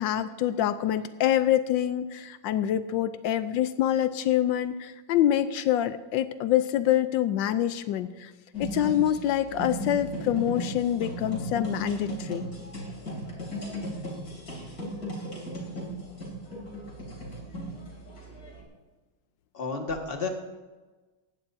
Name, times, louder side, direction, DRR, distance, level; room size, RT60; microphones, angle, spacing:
voice 1, 0.0-8.3 8.6-12.5, left 11 dB, 85° left, 11 dB, 1.3 m, -26 dB
sound 1, 8.5-18.6, equal, 50° left, 3.5 m, -36 dB
voice 2, 19.5-20.3, left 4 dB, 30° left, 2 dB, 1.8 m, -31 dB
18.5 x 15.5 x 2.7 m, 1.2 s
omnidirectional pair, 2.0 m